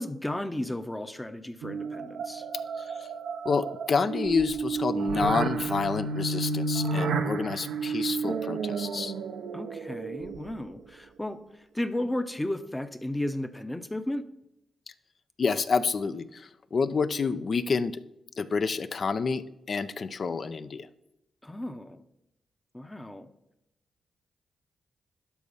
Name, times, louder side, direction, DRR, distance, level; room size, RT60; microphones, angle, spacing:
voice 1, 0.0-2.4 9.5-14.3 21.4-22.0 22.7-23.3, left 1 dB, 10° left, 11 dB, 0.7 m, -34 dB
sound 1, 1.6-10.7, right 4 dB, 90° right, 0.7 m, -31 dB
voice 2, 2.8-3.1 3.4-9.1 15.4-18.0 18.4-19.4 19.7-20.9, left 5 dB, 55° left, 13 dB, 0.5 m, -28 dB
12.0 x 4.2 x 5.5 m, 0.87 s
cardioid pair, 75°, 0 cm